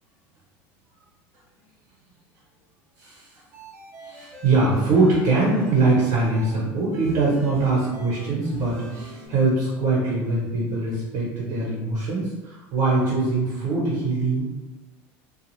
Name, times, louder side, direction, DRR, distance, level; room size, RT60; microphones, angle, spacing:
sound 1, 3.5-6.5 6.9-9.3, right 3 dB, 45° right, 0.8 m, -41 dB
voice 1, 4.0-14.4, right 3 dB, 60° right, -6 dB, 1.1 m, -22 dB
2.4 x 2.4 x 3.1 m, 1.1 s
cardioid pair, 165°, 7 cm